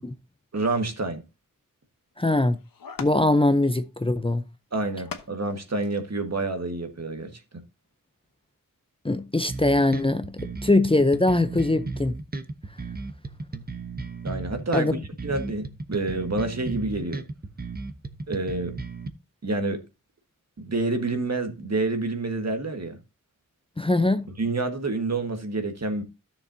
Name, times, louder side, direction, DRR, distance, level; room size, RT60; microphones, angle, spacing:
voice 1, 0.5-1.2 4.7-7.6 14.2-17.2 18.3-18.8 19.4-19.8 20.6-23.0 24.4-26.0, right 2 dB, 50° right, 1.6 m, -28 dB
sound 1, 2.1-2.2 2.6-3.5 4.8-6.0 6.8-6.9 7.3-7.4, left 6 dB, 85° left, 1.0 m, -41 dB
voice 2, 2.2-2.6 3.0-4.4 9.0-12.2 14.7-14.9 23.8-24.3, left 2 dB, 15° left, 0.6 m, -22 dB
sound 2, 9.5-19.1, right 3 dB, 30° right, 0.9 m, -35 dB
13.0 x 6.8 x 2.7 m
wide cardioid pair, 55°, 33 cm